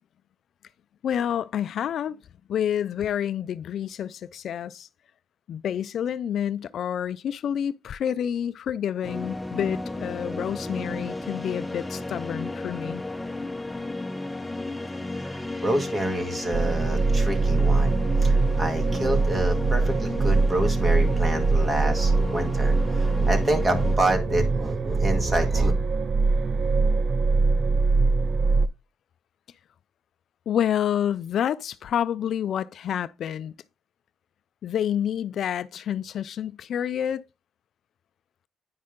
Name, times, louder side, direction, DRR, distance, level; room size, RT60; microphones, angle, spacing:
voice 1, 1.0-2.2 2.5-4.9 5.5-13.0 30.5-33.5 34.6-37.2, left 9 dB, 65° left, 0.4 m, -28 dB
sound 1, 9.0-24.0, left 2 dB, 10° left, 0.8 m, -34 dB
voice 2, 15.2-25.7, right 1 dB, 25° right, 1.9 m, -28 dB
sound 2, 16.5-28.7, right 3 dB, 45° right, 0.5 m, -23 dB
9.5 x 5.2 x 3.7 m
cardioid pair, 90°, 0 cm